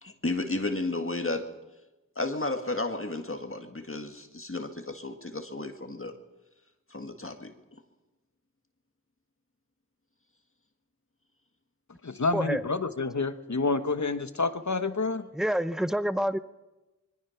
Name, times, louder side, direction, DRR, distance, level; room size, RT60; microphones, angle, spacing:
voice 1, 0.0-1.5 2.2-6.1 6.9-7.5, left 2 dB, 40° left, 5 dB, 1.9 m, -33 dB
voice 2, 12.0-15.3, left 3 dB, 60° left, 10 dB, 1.2 m, -28 dB
voice 3, 15.3-16.4, equal, ahead, 13 dB, 0.8 m, -27 dB
26.5 x 23.0 x 5.8 m, 1.1 s
wide cardioid pair, 55°, 33 cm